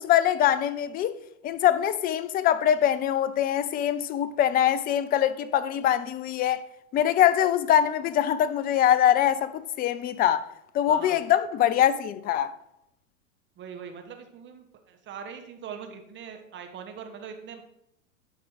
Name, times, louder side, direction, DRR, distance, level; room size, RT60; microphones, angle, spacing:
voice 1, 0.0-6.6 6.9-10.4 10.7-12.5, left 10 dB, 25° left, 0.5 m, -23 dB
voice 2, 10.9-11.2 13.6-17.6, right 7 dB, 30° right, 1.2 m, -41 dB
11.5 x 4.8 x 4.8 m
hypercardioid pair, 105°, 40 cm